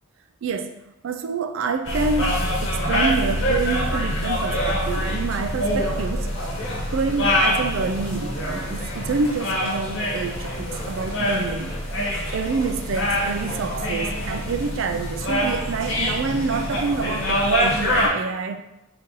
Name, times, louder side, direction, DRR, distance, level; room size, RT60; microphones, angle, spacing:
voice 1, 0.4-6.3 6.9-11.8 12.3-18.6, right 4 dB, 70° right, 7 dB, 0.4 m, -27 dB
sound 1, 1.9-18.1, equal, 65° left, 1.1 m, -25 dB
3.8 x 2.7 x 3.8 m, 0.89 s
head